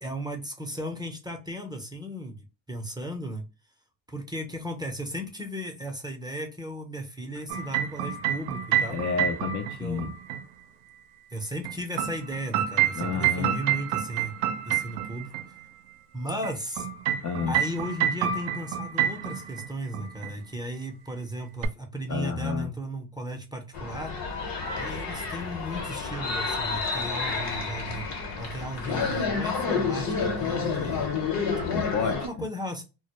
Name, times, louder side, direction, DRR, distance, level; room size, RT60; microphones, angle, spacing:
voice 1, 0.0-3.4 4.1-9.0 9.8-10.0 11.3-14.3 14.6-15.3 16.1-16.9 17.5-24.1 24.8-28.0 28.4-31.1 32.1-32.8, right 1 dB, 10° right, 0.5 m, -35 dB
sound 1, 7.5-10.4 11.7-15.4 16.4-19.7 19.9-20.3 21.6-21.7, right 10 dB, 65° right, 0.5 m, -28 dB
voice 2, 8.9-10.1 12.9-13.6 17.2-17.5 22.1-22.7 31.5-32.5, left 5 dB, 40° left, 0.5 m, -30 dB
sound 2, 23.7-32.3, left 4 dB, 65° left, 1.1 m, -30 dB
2.2 x 2.0 x 2.9 m
supercardioid pair, 75°, 47 cm